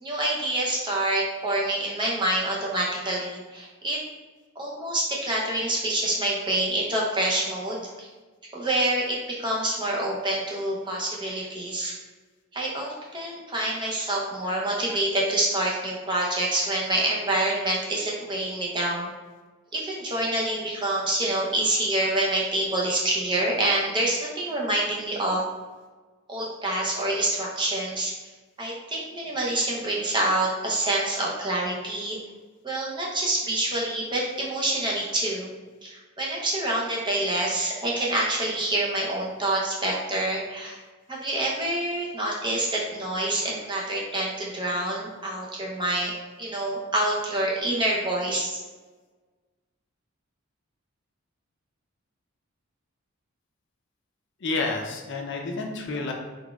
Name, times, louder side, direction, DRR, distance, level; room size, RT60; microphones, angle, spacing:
voice 1, 0.0-4.0 4.6-8.1 8.5-11.9 12.5-19.1 19.7-25.4 26.3-28.1 28.6-32.2 32.6-35.5 35.8-40.8 41.1-46.1 46.4-48.6, right 1 dB, 20° right, -3 dB, 0.7 m, -27 dB
voice 2, 54.4-56.1, left 3 dB, 55° left, 1 dB, 0.5 m, -29 dB
4.0 x 3.4 x 2.3 m, 1.3 s
head